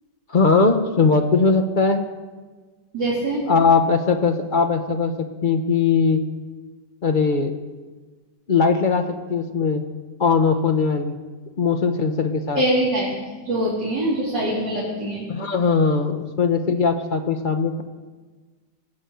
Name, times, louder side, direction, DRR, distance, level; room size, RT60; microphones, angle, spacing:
voice 1, 0.3-2.0 3.5-6.2 7.0-7.5 8.5-9.8 10.2-11.2 11.6-12.6 15.3-17.8, left 4 dB, 50° left, 7 dB, 0.6 m, -20 dB
voice 2, 2.9-3.5 12.6-13.1 13.4-15.3, right 1 dB, 75° right, -8 dB, 3.8 m, -23 dB
18.5 x 6.9 x 7.7 m, 1.3 s
omnidirectional pair, 1.9 m